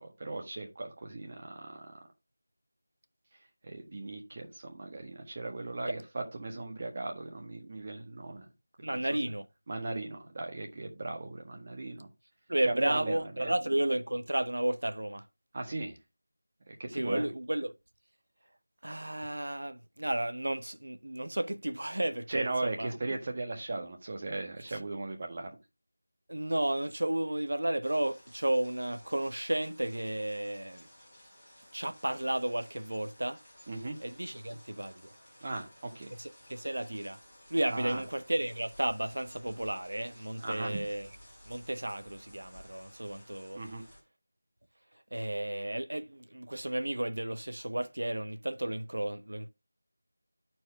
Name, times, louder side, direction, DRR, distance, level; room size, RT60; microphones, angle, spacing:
voice 1, 0.0-1.9 3.6-8.5 8.8-9.2 9.7-12.1 12.6-13.5 15.5-16.0 16.7-17.3 22.3-25.5 33.7-34.0 35.4-36.1 37.7-38.0 40.4-40.8 43.5-43.8, right 2 dB, 30° right, 1.5 m, -37 dB
voice 2, 8.8-9.5 12.5-15.2 16.8-17.7 18.8-22.9 24.7-24.8 26.3-30.9 31.7-33.4 34.0-35.1 36.2-37.2 37.5-41.1 41.5-43.6 45.1-49.5, right 1 dB, 80° right, 0.9 m, -33 dB
sound 1, 27.8-44.0, equal, 5° left, 3.1 m, -56 dB
12.0 x 4.6 x 3.4 m
figure-of-eight pair, 175°, 0 cm